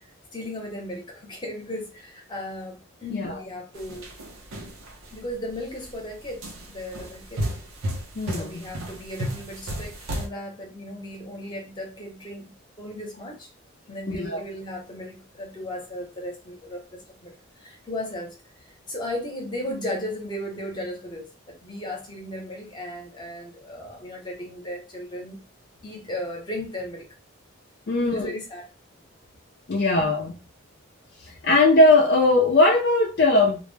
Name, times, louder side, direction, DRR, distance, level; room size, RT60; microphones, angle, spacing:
voice 1, 0.3-4.1 5.1-7.4 8.3-13.5 13.9-17.3 17.6-18.4 18.9-21.3 21.6-25.4 25.8-27.1 27.9-28.6 29.7-29.9, left 1 dB, 20° left, 0.8 m, -36 dB
sound 1, 3.8-5.1 5.7-5.9 6.4-10.3, equal, 85° right, 0.7 m, -33 dB
voice 2, 8.2-8.6 14.1-14.4 27.9-28.3 29.7-30.3 31.4-33.6, left 2 dB, 50° left, 0.4 m, -19 dB
2.4 x 2.1 x 3.2 m
head